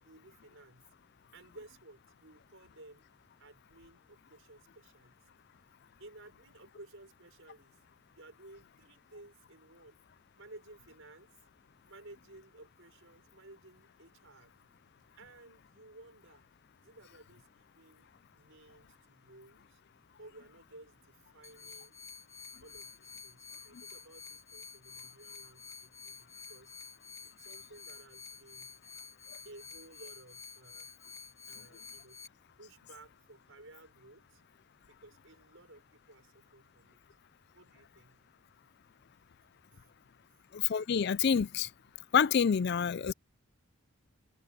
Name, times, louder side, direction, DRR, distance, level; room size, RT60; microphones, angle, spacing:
voice 1, 0.0-0.9 1.3-3.1 3.4-5.2 6.0-7.8 8.1-10.0 10.3-11.3 11.8-14.5 15.1-16.5 16.8-19.8 20.2-22.0 22.6-26.7 27.2-28.7 29.4-30.9 31.4-32.2 32.6-34.4 34.9-37.0 37.5-38.2 39.7-39.9, right 2 dB, 60° right, 6.2 m, -56 dB
sound 1, 21.4-32.3, left 6 dB, 15° left, 1.3 m, -50 dB
voice 2, 40.5-41.7 42.1-43.1, left 7 dB, 45° left, 0.4 m, -27 dB
open air
head